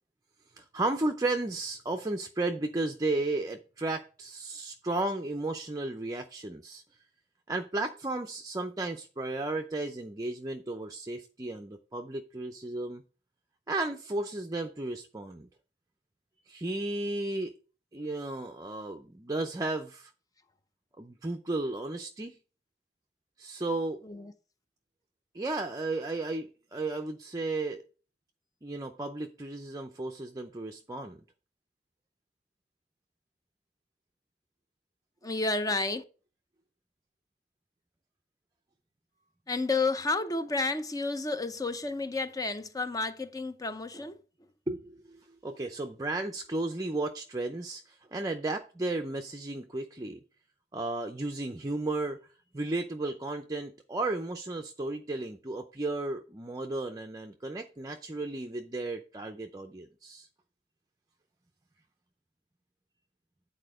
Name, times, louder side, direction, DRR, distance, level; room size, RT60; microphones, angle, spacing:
voice 1, 0.6-6.8 7.5-13.0 13.7-15.5 16.5-17.5 17.9-20.1 21.0-22.4 23.4-24.0 25.3-27.8 28.6-31.2 44.7-50.2 50.7-52.2 52.5-60.3, right 2 dB, 20° right, 0.5 m, -34 dB
voice 2, 35.2-36.0 39.5-44.2, left 3 dB, 20° left, 0.7 m, -31 dB
8.9 x 4.3 x 6.1 m
head